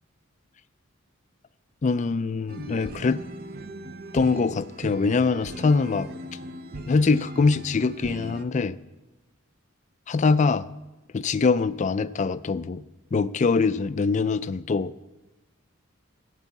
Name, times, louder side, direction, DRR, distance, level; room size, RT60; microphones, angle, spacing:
voice 1, 1.8-3.2 4.1-6.1 6.9-8.8 10.1-10.7 11.1-12.8 13.1-14.9, left 4 dB, 35° left, 14 dB, 0.3 m, -23 dB
sound 1, 2.5-8.5, right 1 dB, 45° right, 0.6 m, -39 dB
13.5 x 6.2 x 8.3 m, 1.1 s
head